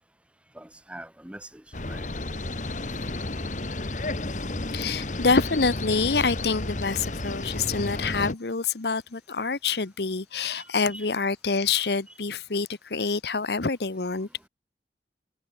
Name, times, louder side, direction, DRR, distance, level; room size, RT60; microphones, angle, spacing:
voice 1, 0.5-2.1 10.5-11.1 12.1-12.2, right 1 dB, 5° right, 1.2 m, -44 dB
sound 1, 1.7-8.3, left 2 dB, 45° left, 1.7 m, -32 dB
voice 2, 4.7-14.3, left 4 dB, 65° left, 1.0 m, -26 dB
head